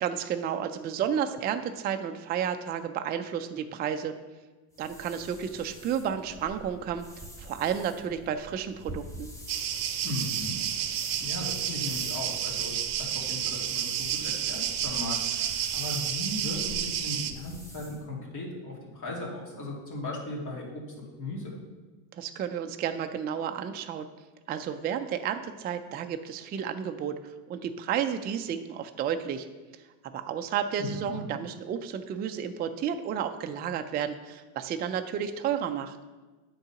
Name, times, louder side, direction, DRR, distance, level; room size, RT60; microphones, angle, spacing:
voice 1, 0.0-4.1 4.8-7.1 7.4-9.3 22.1-24.1 24.5-29.5 30.0-36.0, right 8 dB, 25° right, 7 dB, 0.3 m, -32 dB
sound 1, 4.7-18.0, equal, 5° left, 1.0 m, -46 dB
sound 2, 9.5-17.3, right 10 dB, 45° right, 0.7 m, -31 dB
voice 2, 10.0-10.6 11.2-21.5 30.8-31.3, left 2 dB, 40° left, -3 dB, 2.6 m, -37 dB
7.8 x 3.9 x 5.7 m, 1.3 s
supercardioid pair, 100°, 46 cm